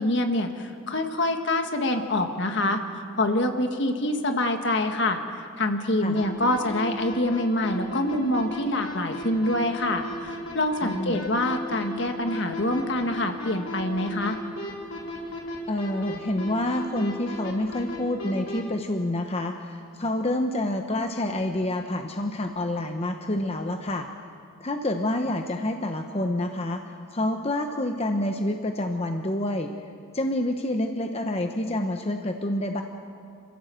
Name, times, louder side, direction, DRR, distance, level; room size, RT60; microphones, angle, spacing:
voice 1, 0.0-2.8 3.2-14.4, left 1 dB, 60° left, 5 dB, 1.7 m, -26 dB
sound 1, 6.2-18.6, left 2 dB, 80° left, 4.4 m, -35 dB
voice 2, 10.8-11.2 15.7-24.1 24.6-26.8 27.1-29.7 30.1-32.8, left 1 dB, 30° left, 4 dB, 0.9 m, -28 dB
27.5 x 15.5 x 7.7 m, 2.4 s
head